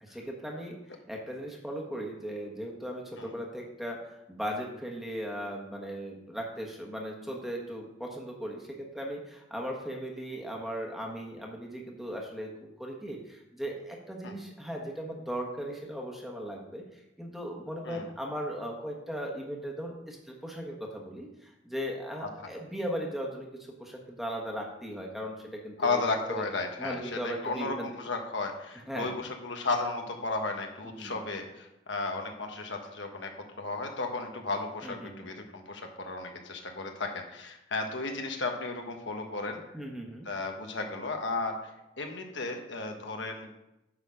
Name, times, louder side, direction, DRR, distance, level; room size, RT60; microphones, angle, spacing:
voice 1, 0.0-23.5 23.8-26.4 26.8-27.9 28.9-29.1 31.0-31.2 34.8-35.3 39.7-40.3, equal, ahead, -1 dB, 1.3 m, -38 dB
voice 2, 25.8-33.3 33.6-39.6 40.2-41.5 42.0-43.5, left 3 dB, 85° left, 3 dB, 1.3 m, -34 dB
9.6 x 4.1 x 6.3 m, 0.89 s
head